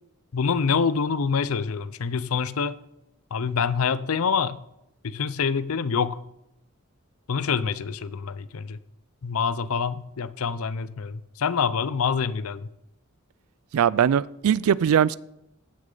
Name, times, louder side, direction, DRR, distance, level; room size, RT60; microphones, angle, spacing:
voice 1, 0.3-2.8 3.3-4.6 5.0-6.2 7.3-8.8 9.2-12.7, left 6 dB, 85° left, 0.6 m, -26 dB
voice 2, 13.7-15.1, right 8 dB, 85° right, 0.3 m, -20 dB
15.5 x 6.4 x 3.9 m
head